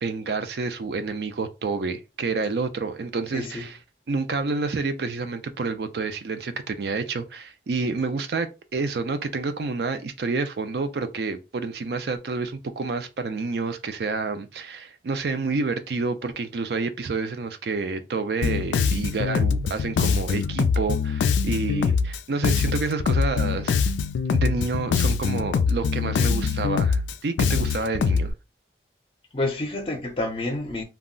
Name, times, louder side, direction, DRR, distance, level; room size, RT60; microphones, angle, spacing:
voice 1, 0.0-3.8 4.1-23.9 24.3-28.3, right 4 dB, 65° right, 0.4 m, -29 dB
voice 2, 3.3-3.6 29.3-30.8, left 2 dB, 30° left, 0.5 m, -28 dB
Bass guitar, 18.4-28.3, left 5 dB, 90° left, 0.3 m, -23 dB
2.3 x 2.0 x 3.7 m
head